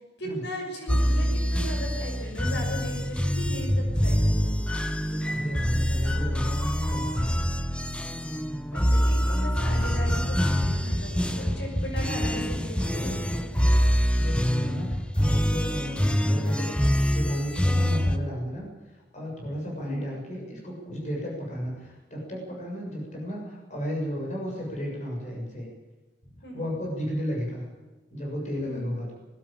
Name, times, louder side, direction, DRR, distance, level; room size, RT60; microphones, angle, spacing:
voice 1, 0.2-4.6 8.7-13.1 19.8-20.1 26.4-26.7 28.7-28.9, equal, 70° left, 0 dB, 6.5 m, -37 dB
sound 1, 0.9-18.2, equal, 5° left, 0.9 m, -25 dB
voice 2, 4.9-7.4 11.9-12.0 12.8-13.8 14.1-25.7 26.5-27.6 28.1-29.1, equal, 40° left, -1 dB, 7.0 m, -34 dB
20.0 x 17.0 x 8.8 m, 1.2 s
head